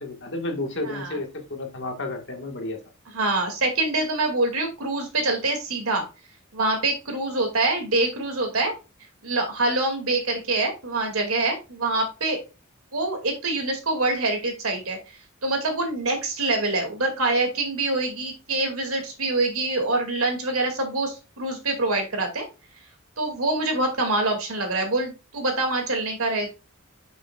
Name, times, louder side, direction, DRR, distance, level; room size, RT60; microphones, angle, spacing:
voice 1, 0.0-2.8, left 2 dB, 55° left, 1.6 m, -31 dB
voice 2, 0.8-1.2 3.1-6.0 6.5-8.7 9.2-12.4 12.9-15.0 15.4-22.4 23.2-26.5, right 2 dB, 80° right, 2.3 m, -25 dB
8.0 x 6.4 x 2.4 m
head